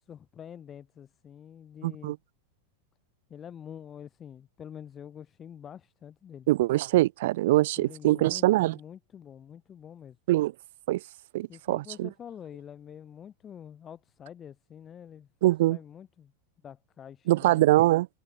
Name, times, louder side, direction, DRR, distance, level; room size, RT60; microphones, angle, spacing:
voice 1, 0.1-2.1 3.3-6.5 7.8-10.2 11.5-15.3 15.7-16.3 16.6-17.8, left 8 dB, 25° left, 7.1 m, -46 dB
voice 2, 1.8-2.2 6.5-8.8 10.3-10.5 10.9-11.0 11.3-12.1 15.4-15.8 17.3-18.1, right 17 dB, 55° right, 0.4 m, -23 dB
figure-of-eight pair, 90°, 0 cm